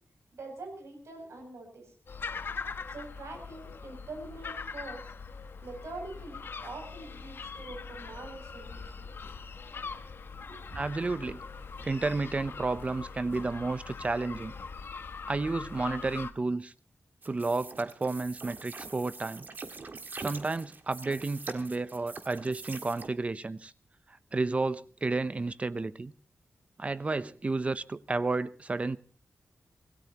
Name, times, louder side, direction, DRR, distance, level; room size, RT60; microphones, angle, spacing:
voice 1, 0.3-1.9 2.9-5.1 5.6-9.1 10.5-10.8, right 2 dB, 80° right, 7.6 m, -44 dB
sound 1, 2.1-16.3, left 5 dB, 55° left, 1.0 m, -42 dB
voice 2, 10.7-11.4 11.8-14.5 15.3-16.7 17.3-19.5 20.2-23.7 24.1-26.1 26.8-29.0, right 3 dB, 30° right, 0.7 m, -31 dB
sound 2, 17.2-23.1, right 3 dB, 45° right, 1.7 m, -44 dB
26.5 x 17.0 x 3.0 m
wide cardioid pair, 165°, 5 cm